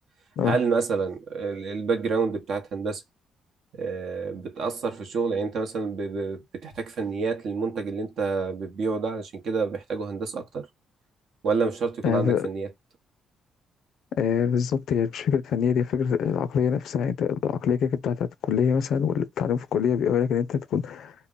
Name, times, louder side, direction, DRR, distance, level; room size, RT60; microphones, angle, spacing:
voice 1, 0.4-3.0 3.8-10.7 11.4-12.7, right 4 dB, 65° right, 0.8 m, -28 dB
voice 2, 12.0-12.5 14.2-21.1, left 7 dB, 70° left, 0.4 m, -25 dB
2.2 x 2.1 x 3.6 m
cardioid pair, 90°, 0 cm